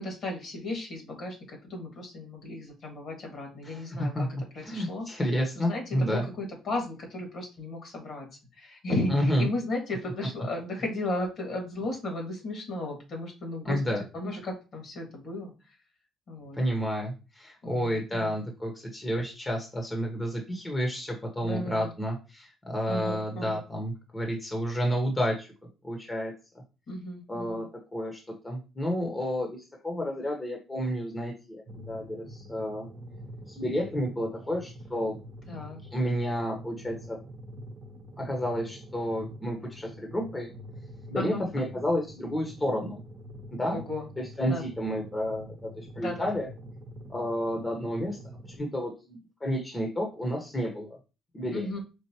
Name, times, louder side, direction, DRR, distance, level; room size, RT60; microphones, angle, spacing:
voice 1, 0.0-4.3 4.5-5.1 5.6-8.3 8.5-13.8 14.1-15.7 16.3-16.6 17.6-18.4 21.4-21.9 22.9-23.6 26.9-27.6 35.5-35.8 41.1-41.5 43.7-44.1 44.4-44.6 46.0-46.3 51.5-51.8, left 2 dB, 60° left, 1 dB, 1.9 m, -35 dB
voice 2, 3.6-4.3 4.6-6.2 9.1-9.5 13.6-14.0 16.5-25.5 25.8-26.3 27.3-27.6 27.9-32.9 33.5-35.1 35.9-37.2 38.2-40.5 41.1-43.0 43.5-43.8 44.2-46.5 47.1-48.2 48.6-51.0 51.3-51.6, equal, 20° left, 1 dB, 1.0 m, -30 dB
sound 1, 31.7-48.6, equal, 50° right, 0.9 m, -46 dB
4.5 x 2.5 x 2.9 m, 0.31 s
cardioid pair, 85°, 0 cm